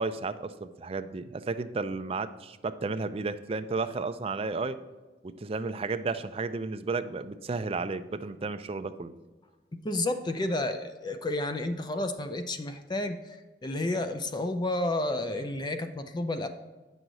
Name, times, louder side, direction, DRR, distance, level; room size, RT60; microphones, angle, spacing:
voice 1, 0.0-4.8 5.2-9.1, right 3 dB, 35° right, 10 dB, 0.4 m, -33 dB
voice 2, 9.8-16.5, left 2 dB, 25° left, 8 dB, 0.4 m, -31 dB
8.8 x 6.2 x 4.0 m, 1.3 s
head